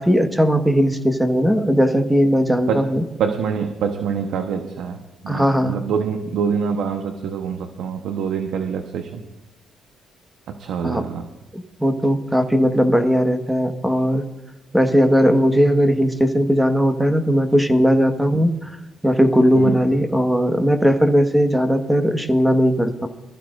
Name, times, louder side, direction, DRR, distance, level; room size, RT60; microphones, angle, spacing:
voice 1, 0.0-3.0 5.3-5.7 10.8-11.0 11.5-14.2 14.7-18.7 19.0-23.1, equal, 5° right, 6 dB, 1.6 m, -18 dB
voice 2, 3.2-9.2 10.5-11.3 18.3-18.5 19.5-19.8, right 6 dB, 80° right, 5 dB, 1.1 m, -25 dB
24.0 x 14.5 x 2.6 m, 1.0 s
cardioid pair, 90°, 0 cm